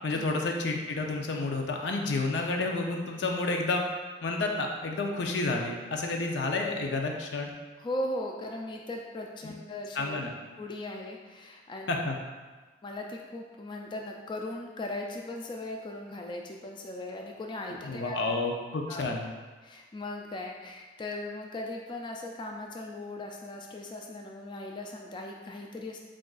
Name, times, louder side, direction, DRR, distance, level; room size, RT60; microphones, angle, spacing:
voice 1, 0.0-3.8 4.2-7.5 9.4-9.5 10.0-10.3 11.9-12.2 17.8-19.3, left 3 dB, 80° left, 2 dB, 0.5 m, -30 dB
voice 2, 7.8-10.2 10.6-11.9 12.8-18.2 18.9-19.0 19.6-26.0, left 1 dB, 25° left, 1 dB, 0.3 m, -38 dB
7.5 x 2.5 x 2.3 m, 1.3 s
head